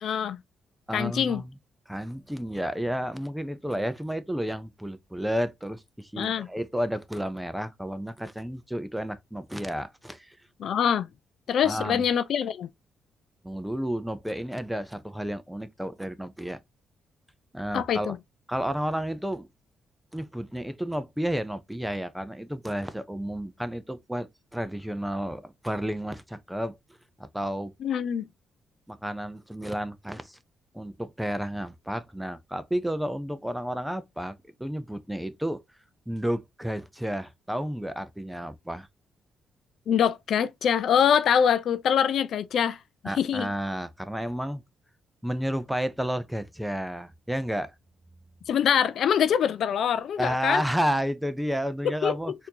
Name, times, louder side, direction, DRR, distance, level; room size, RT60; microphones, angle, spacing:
voice 1, 0.0-0.4 0.9-1.4 6.2-6.5 10.6-11.1 11.5-12.7 17.7-18.2 27.8-28.3 39.9-42.8 43.2-43.5 48.5-50.6 52.0-52.1, left 8 dB, 65° left, 0.4 m, -24 dB
voice 2, 0.9-1.5 1.9-10.4 11.6-12.0 13.4-16.6 17.5-18.1 18.5-19.5 20.1-26.8 27.2-27.7 28.9-30.4 30.7-35.6 36.1-38.9 43.0-44.6 45.2-47.7 50.2-52.3, equal, 5° right, 0.6 m, -31 dB
4.1 x 2.7 x 2.8 m
cardioid pair, 90°, 0 cm